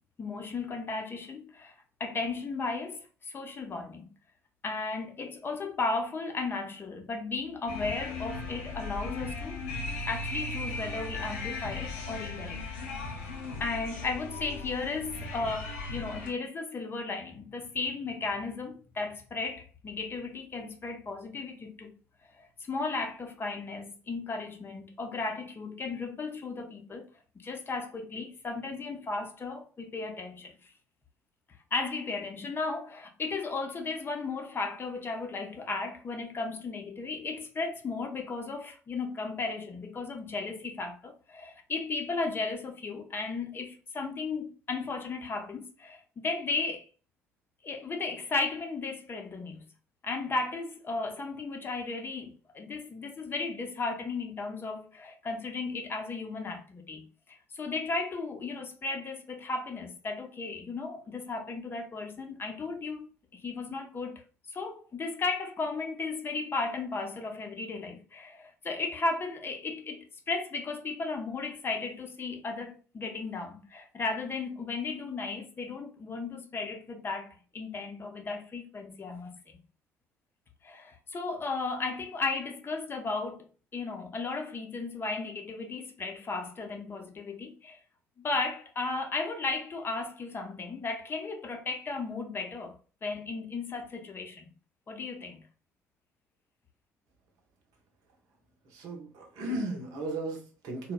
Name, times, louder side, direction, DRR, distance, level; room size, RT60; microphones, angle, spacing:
voice 1, 0.2-1.7 2.0-4.1 4.6-9.6 10.1-12.6 13.3-13.4 13.6-22.0 22.3-27.1 27.3-30.7 31.7-46.9 47.6-49.6 50.0-64.2 64.5-79.4 80.6-87.8 88.2-92.7 93.0-94.5 94.9-95.4, left 3 dB, 30° left, 0.6 m, -35 dB
sound 1, 7.7-16.3, left 3 dB, 80° left, 0.6 m, -37 dB
voice 2, 98.6-100.9, right 2 dB, 60° right, 0.7 m, -35 dB
2.9 x 2.1 x 2.3 m
figure-of-eight pair, 50°, 7 cm